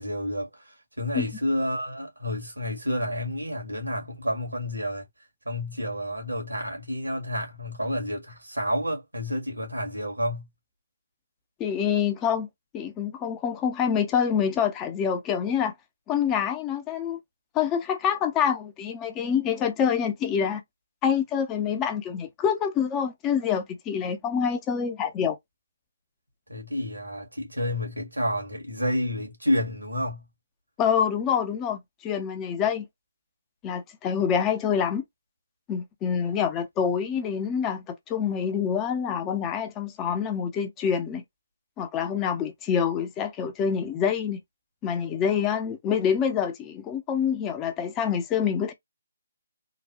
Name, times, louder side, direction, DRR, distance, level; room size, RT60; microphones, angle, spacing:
voice 1, 0.0-5.1 5.5-10.5 26.5-30.3, equal, 85° right, 1.7 m, -30 dB
voice 2, 11.6-12.5 12.7-15.7 16.1-17.2 17.5-20.6 21.0-25.4 30.8-32.9 33.6-35.0 35.7-41.2 41.8-44.4 44.8-48.7, left 7 dB, 20° left, 0.6 m, -26 dB
3.8 x 2.3 x 2.9 m
figure-of-eight pair, 140°, 0 cm